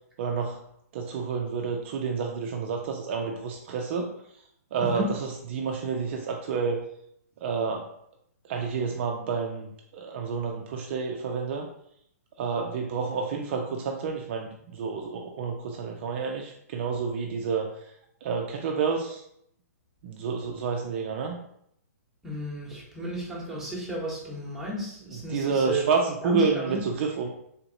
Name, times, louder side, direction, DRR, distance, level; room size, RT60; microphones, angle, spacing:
voice 1, 0.2-0.6 0.9-4.1 4.7-6.8 7.4-7.9 8.5-11.7 12.4-17.7 18.2-19.2 20.0-21.4 25.3-27.3, right 5 dB, 45° right, 2 dB, 0.4 m, -29 dB
voice 2, 4.8-5.1 22.2-25.9 26.2-26.8, right 1 dB, 5° right, -5 dB, 1.0 m, -33 dB
3.5 x 2.8 x 2.7 m, 0.72 s
figure-of-eight pair, 125°, 9 cm